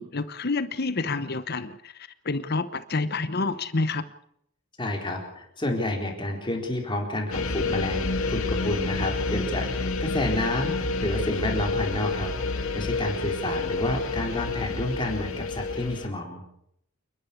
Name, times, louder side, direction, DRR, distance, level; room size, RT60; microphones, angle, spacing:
voice 1, 0.0-4.1, left 3 dB, 50° left, 1.0 m, -28 dB
voice 2, 4.8-16.4, left 1 dB, 25° left, 4.1 m, -30 dB
sound 1, 7.3-16.1, left 3 dB, 75° left, 1.9 m, -29 dB
29.0 x 11.5 x 8.4 m
head